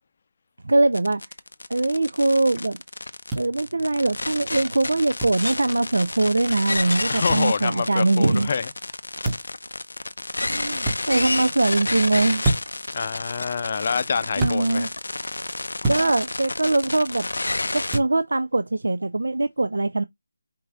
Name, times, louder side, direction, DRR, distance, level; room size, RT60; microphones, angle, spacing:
voice 1, 0.6-1.2 1.7-2.8 3.4-8.5 10.4-12.4 14.4-14.9 15.9-17.3 17.7-20.0, right 2 dB, 80° right, 0.4 m, -22 dB
sound 1, 0.9-18.0, left 2 dB, 90° left, 0.6 m, -30 dB
sound 2, 3.3-3.4 5.2-5.4 7.3-7.5 9.2-9.6 10.8-11.0 12.4-12.8 14.4-14.6 15.8-16.1 17.9-18.1, right 2 dB, 10° right, 0.8 m, -25 dB
voice 2, 7.1-8.7 12.9-14.9, left 5 dB, 40° left, 0.5 m, -26 dB
5.4 x 2.6 x 3.5 m
figure-of-eight pair, 170°, 0 cm